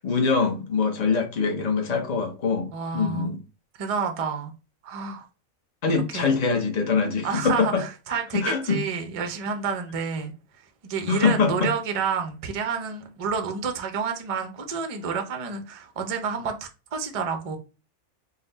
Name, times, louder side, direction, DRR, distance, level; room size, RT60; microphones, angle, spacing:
voice 1, 0.0-3.4 5.8-7.8 8.1-8.8 11.1-11.7, left 5 dB, 40° left, 0.6 m, -24 dB
voice 2, 2.7-3.3 3.8-4.5 4.8-5.3 5.9-6.3 7.2-10.3 10.8-17.6, right 6 dB, 50° right, 0.4 m, -29 dB
3.9 x 2.1 x 4.0 m
omnidirectional pair, 1.5 m